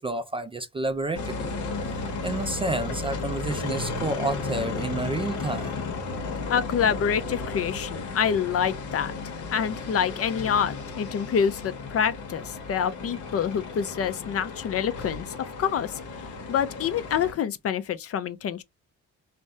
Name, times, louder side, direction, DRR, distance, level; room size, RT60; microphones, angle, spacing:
voice 1, 0.0-1.5 2.0-5.8, right 2 dB, 20° right, 0.3 m, -30 dB
sound 1, 1.1-17.3, left 3 dB, 75° left, 1.0 m, -34 dB
voice 2, 6.5-9.2 9.5-15.9 16.5-18.6, left 7 dB, 50° left, 0.5 m, -27 dB
3.3 x 2.1 x 2.6 m
cardioid pair, 90°, 30 cm